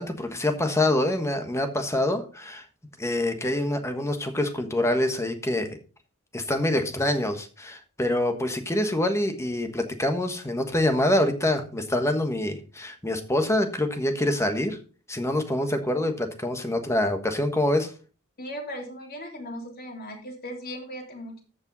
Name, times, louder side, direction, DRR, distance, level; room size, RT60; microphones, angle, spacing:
voice 1, 0.0-2.6 3.0-5.8 6.3-14.8 15.1-17.9, left 1 dB, 15° left, 6 dB, 1.4 m, -25 dB
voice 2, 18.4-21.4, equal, 45° left, 1 dB, 3.1 m, -37 dB
14.5 x 5.5 x 4.0 m, 0.37 s
head